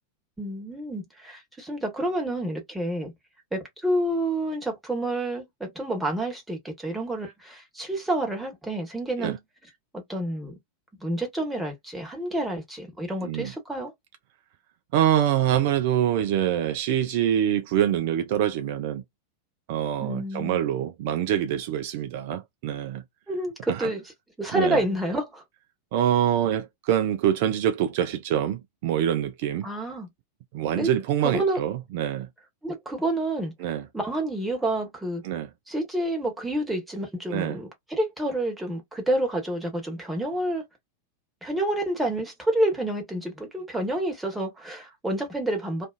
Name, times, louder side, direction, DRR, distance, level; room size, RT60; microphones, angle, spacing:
voice 1, 0.4-3.1 3.5-9.4 9.9-10.5 11.0-13.9 20.0-20.6 23.3-24.0 24.4-25.4 29.6-30.1 30.8-30.9 31.2-31.6 32.6-33.5 33.9-35.2 35.7-40.6 41.4-45.9, right 1 dB, 5° right, 1.2 m, -29 dB
voice 2, 14.9-19.0 19.7-23.0 23.7-23.9 24.5-24.8 25.9-29.7 30.5-32.3 33.6-33.9 35.2-35.5 37.3-37.6, right 10 dB, 50° right, 0.3 m, -25 dB
2.5 x 2.4 x 2.4 m
figure-of-eight pair, 90°, 0 cm